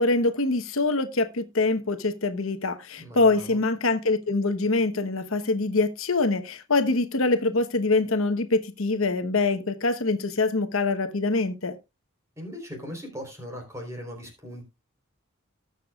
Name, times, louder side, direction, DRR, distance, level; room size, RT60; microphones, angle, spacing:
voice 1, 0.0-11.8, left 3 dB, 70° left, 1.0 m, -24 dB
voice 2, 3.0-3.6 12.4-14.7, equal, 15° right, 3.7 m, -39 dB
19.0 x 6.7 x 2.3 m
head